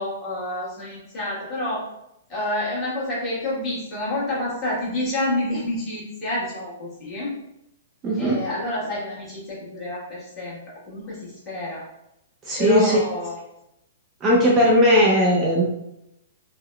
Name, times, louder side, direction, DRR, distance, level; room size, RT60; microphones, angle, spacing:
voice 1, 0.0-1.8 2.3-7.4 8.2-10.6 10.9-11.8 12.6-13.4, left 1 dB, 25° left, -8 dB, 1.3 m, -28 dB
voice 2, 8.0-8.4 12.5-13.0 14.2-15.6, equal, 20° right, -3 dB, 0.4 m, -17 dB
3.4 x 2.1 x 2.2 m, 0.84 s
hypercardioid pair, 145°, 0 cm